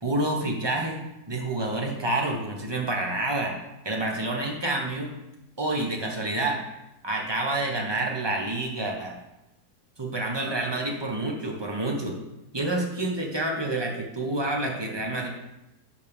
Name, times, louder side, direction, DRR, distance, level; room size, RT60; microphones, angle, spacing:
voice 1, 0.0-3.6 3.8-5.1 5.6-6.6 7.0-9.2 10.0-12.2 12.5-15.3, right 2 dB, 15° right, 0 dB, 1.1 m, -28 dB
12.0 x 4.9 x 3.6 m, 0.92 s
omnidirectional pair, 1.7 m